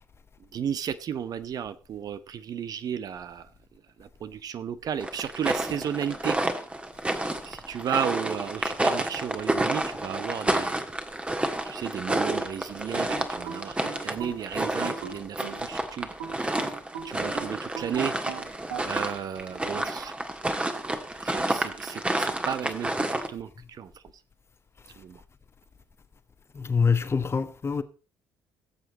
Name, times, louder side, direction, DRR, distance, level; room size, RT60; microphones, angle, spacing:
voice 1, 0.5-3.5 4.0-6.4 7.4-10.8 11.6-16.7 17.0-18.1 18.8-20.1 21.2-23.9 25.0-25.2, right 8 dB, 45° right, 0.8 m, -33 dB
sound 1, 5.0-23.3, right 1 dB, 15° right, 1.6 m, -30 dB
sound 2, 13.1-15.7 16.2-18.9, right 7 dB, 70° right, 2.3 m, -39 dB
voice 2, 26.5-27.8, left 5 dB, 30° left, 1.1 m, -25 dB
17.5 x 7.9 x 4.1 m
figure-of-eight pair, 50°, 9 cm